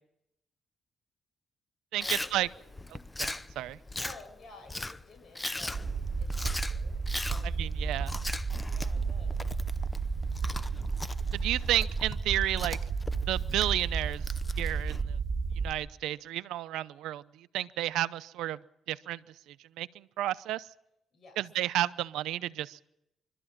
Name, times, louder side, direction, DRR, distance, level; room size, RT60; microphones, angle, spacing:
voice 1, 2.0-2.7 3.7-5.8 6.2-7.5 8.7-9.4 21.1-21.4, left 3 dB, 50° left, 3 dB, 7.3 m, -52 dB
Chewing mastication, 2.0-15.0, left 2 dB, 15° left, 0.7 m, -40 dB
voice 2, 3.2-3.8 7.4-8.1 11.3-12.8 13.3-15.2 15.6-19.2 19.5-20.7 21.4-22.8, right 14 dB, 90° right, 15 dB, 0.7 m, -32 dB
sound 1, 5.7-15.7, right 4 dB, 25° right, 2.8 m, -32 dB
24.5 x 13.0 x 8.9 m, 0.81 s
cardioid pair, 90°, 0 cm